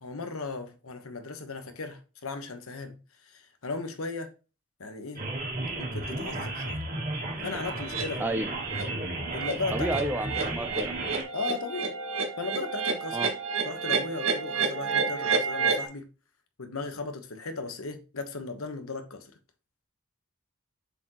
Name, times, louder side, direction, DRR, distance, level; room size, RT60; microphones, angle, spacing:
voice 1, 0.0-4.3 4.8-5.3 5.8-6.8 7.4-8.4 9.3-9.9 11.3-11.9 12.4-13.2 13.6-16.1 16.6-19.3, left 3 dB, 85° left, 1.2 m, -36 dB
sound 1, 5.2-11.2, right 2 dB, 40° right, 1.9 m, -34 dB
sound 2, 7.9-8.0 8.5-8.8 9.2-15.9, right 5 dB, 75° right, 1.8 m, -30 dB
voice 2, 9.7-10.9 13.1-13.3, right 1 dB, 10° right, 0.6 m, -31 dB
7.0 x 4.6 x 3.0 m
head